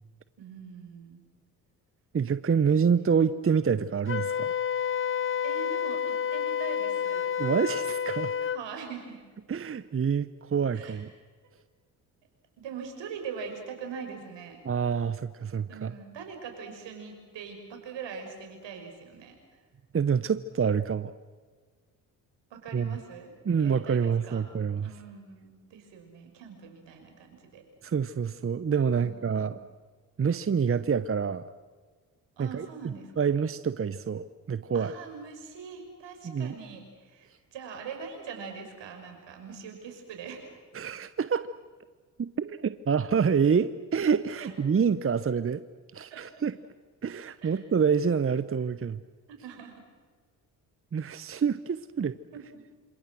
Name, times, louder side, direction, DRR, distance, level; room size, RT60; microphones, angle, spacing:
voice 1, 0.4-1.2 2.6-3.1 5.4-7.3 8.4-9.2 10.7-11.0 12.6-14.6 15.7-19.4 22.5-24.5 24.8-27.6 28.9-29.6 32.4-33.4 34.7-40.6 44.4-44.5 46.1-46.2 47.4-47.6 49.3-49.7 52.3-52.6, right 6 dB, 65° right, 4 dB, 6.0 m, -42 dB
voice 2, 2.1-4.5 7.4-8.3 9.5-11.1 14.6-15.9 19.9-21.1 22.7-23.0 23.5-24.9 27.8-29.6 30.2-31.4 32.4-32.7 33.2-34.9 36.2-36.5 40.7-41.5 42.2-45.6 45.9-46.5 47.0-49.0 50.9-52.2, right 6 dB, 30° right, 14 dB, 0.9 m, -27 dB
Wind instrument woodwind instrument, 4.1-8.6, left 8 dB, 25° left, 0.7 m, -29 dB
27.5 x 27.0 x 6.4 m, 1.5 s
hypercardioid pair, 45°, 46 cm